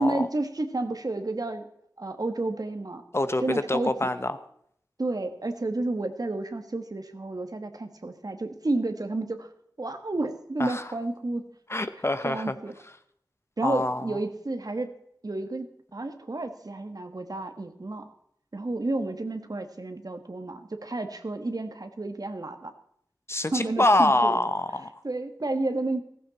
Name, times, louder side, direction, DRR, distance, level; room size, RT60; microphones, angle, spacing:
voice 1, 0.0-1.7 2.0-3.0 3.4-3.9 5.0-9.5 9.8-11.4 12.2-12.7 13.6-15.0 15.2-15.7 15.9-18.1 18.5-22.7 23.5-24.4 25.0-26.0, right 2 dB, 60° right, 7 dB, 1.6 m, -31 dB
voice 2, 3.1-4.4 10.6-10.8 11.7-12.5 13.6-14.2 23.3-24.9, left 1 dB, 35° left, 11 dB, 1.0 m, -25 dB
16.0 x 14.5 x 4.3 m, 0.70 s
wide cardioid pair, 55°, 7 cm